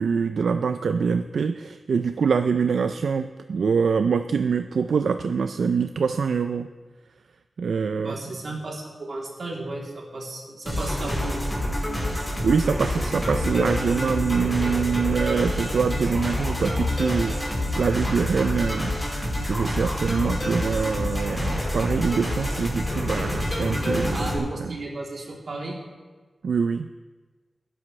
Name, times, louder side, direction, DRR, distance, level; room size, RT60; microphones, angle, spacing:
voice 1, 0.0-6.7 7.6-8.2 12.4-24.7 26.4-26.9, right 5 dB, 85° right, 9 dB, 0.4 m, -25 dB
voice 2, 8.0-11.5 24.1-25.8, right 2 dB, 60° right, -2 dB, 3.1 m, -34 dB
sound 1, 10.7-24.4, left 1 dB, 10° left, 5.0 m, -27 dB
19.5 x 11.0 x 3.3 m, 1.4 s
wide cardioid pair, 95°, 0 cm